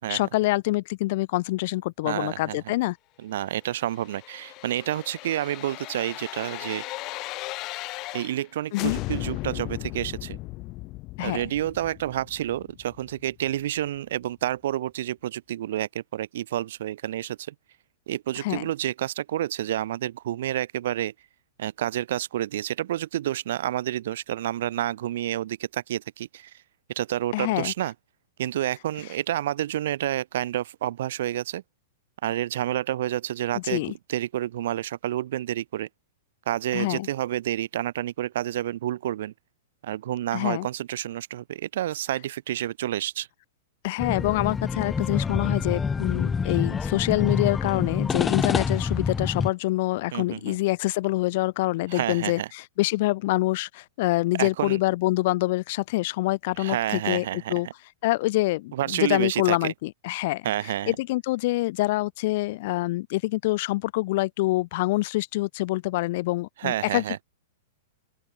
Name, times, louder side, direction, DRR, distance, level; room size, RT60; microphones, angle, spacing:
voice 1, 0.1-3.0 8.7-9.0 11.2-11.4 18.4-18.6 27.3-27.7 29.0-29.1 33.5-33.9 36.7-37.1 40.3-40.7 43.8-57.7 58.0-67.2, left 19 dB, 50° left, 0.4 m, -26 dB
voice 2, 2.0-2.6 3.2-6.8 8.1-10.4 11.2-17.5 18.1-21.1 21.6-26.5 26.9-27.9 28.4-31.6 32.2-35.9 36.5-39.3 39.8-43.3 50.1-50.6 51.9-52.5 54.4-54.8 56.6-57.6 58.7-59.7 60.4-60.9 66.6-67.2, right 12 dB, 65° right, 4.4 m, -29 dB
sound 1, 3.7-8.5 8.7-13.6 14.0-14.1, left 20 dB, 35° left, 4.8 m, -37 dB
sound 2, 44.0-49.5, left 5 dB, 10° left, 1.3 m, -27 dB
open air
hypercardioid pair, 145°, 0 cm